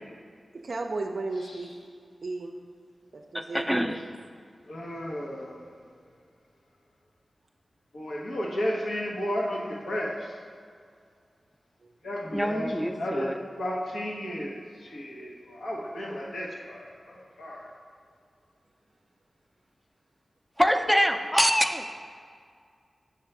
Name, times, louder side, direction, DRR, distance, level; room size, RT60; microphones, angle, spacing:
voice 1, 0.5-1.7 2.0-2.6 3.1-4.1 11.8-11.9, right 3 dB, 70° right, 2 dB, 0.4 m, -35 dB
voice 2, 3.5-4.0 12.3-13.4 20.6-22.0, equal, 5° left, 5 dB, 0.5 m, -25 dB
voice 3, 4.7-5.6 7.9-10.3 12.0-12.7 13.0-13.3 13.6-17.7, equal, 90° left, -3 dB, 1.0 m, -33 dB
6.5 x 3.3 x 5.8 m, 2.1 s
cardioid pair, 55°, 0 cm